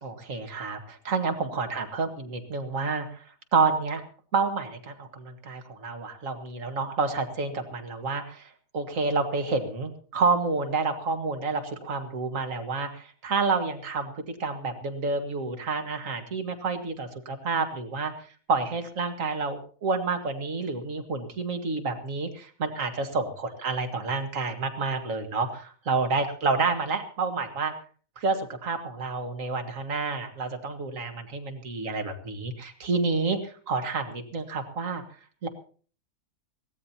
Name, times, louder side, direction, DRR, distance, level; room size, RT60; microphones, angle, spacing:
voice 1, 0.0-4.0 4.3-27.7 28.2-35.0 35.4-35.5, right 4 dB, 65° right, 7 dB, 2.1 m, -29 dB
22.5 x 17.0 x 2.9 m, 0.43 s
omnidirectional pair, 1.5 m